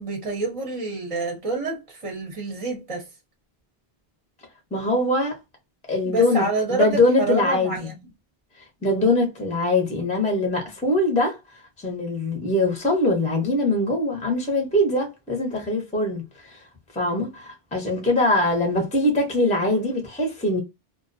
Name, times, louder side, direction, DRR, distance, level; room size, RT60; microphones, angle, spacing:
voice 1, 0.0-3.0 6.0-8.0, right 3 dB, 35° right, 0.6 m, -28 dB
voice 2, 4.7-5.4 5.9-6.4 6.7-7.9 8.8-11.4 11.8-16.6 16.9-20.6, left 2 dB, 10° left, 0.6 m, -22 dB
2.4 x 2.2 x 2.5 m
omnidirectional pair, 1.1 m